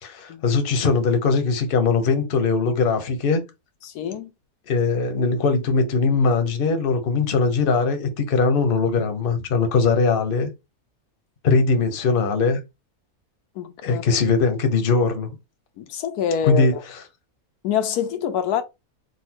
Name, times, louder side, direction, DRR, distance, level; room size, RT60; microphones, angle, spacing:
voice 1, 0.0-3.4 4.7-10.5 11.4-12.6 13.8-15.3 16.4-17.0, left 4 dB, 45° left, 0.9 m, -20 dB
voice 2, 3.8-4.3 13.6-14.0 15.8-16.7 17.6-18.6, left 8 dB, 80° left, 1.1 m, -25 dB
4.1 x 2.4 x 4.3 m
omnidirectional pair, 1.6 m